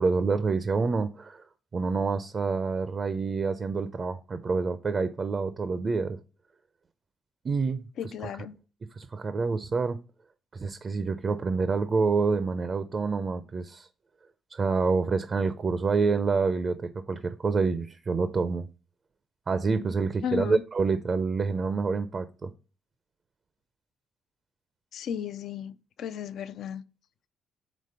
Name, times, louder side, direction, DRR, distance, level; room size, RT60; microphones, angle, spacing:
voice 1, 0.0-1.5 1.7-6.2 7.4-7.8 9.0-10.0 10.5-13.9 14.5-18.7 19.5-22.5, right 4 dB, 40° right, 0.5 m, -27 dB
voice 2, 8.0-8.6 20.2-20.6 24.9-26.8, left 8 dB, 70° left, 0.4 m, -34 dB
5.1 x 3.6 x 5.5 m
cardioid pair, 90°, 0 cm